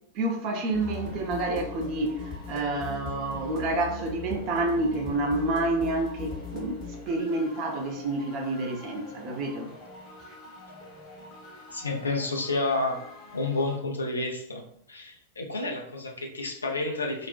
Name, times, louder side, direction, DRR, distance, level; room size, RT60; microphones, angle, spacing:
voice 1, 0.1-9.7, right 2 dB, 40° right, 1 dB, 0.6 m, -29 dB
sound 1, 0.7-13.8, left 3 dB, 40° left, 0.8 m, -41 dB
voice 2, 11.7-13.0 13.3-14.6 14.9-17.3, left 2 dB, 75° left, 1 dB, 0.5 m, -30 dB
2.4 x 2.1 x 2.4 m, 0.71 s
figure-of-eight pair, 90°, 0 cm